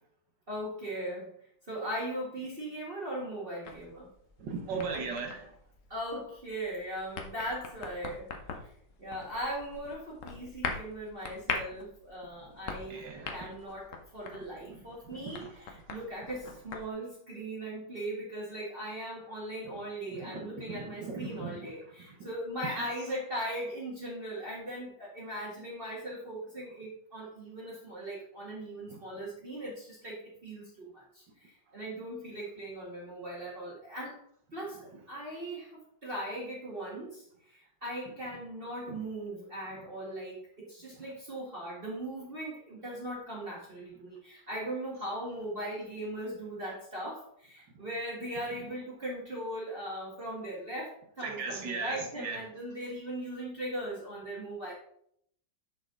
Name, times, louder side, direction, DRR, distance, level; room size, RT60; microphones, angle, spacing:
voice 1, 0.5-1.3 1.7-4.1 5.9-8.3 9.0-34.2 34.5-54.7, right 1 dB, 30° right, -7 dB, 1.9 m, -39 dB
sound 1, 3.6-16.9, left 5 dB, 50° left, 1.1 m, -42 dB
voice 2, 4.4-5.5 12.9-13.5 14.7-14.8 15.2-15.4 20.2-21.7 22.7-22.9 38.9-39.0 51.2-52.4, right 4 dB, 75° right, 3 dB, 1.9 m, -38 dB
6.7 x 6.4 x 3.8 m, 0.68 s
omnidirectional pair, 2.0 m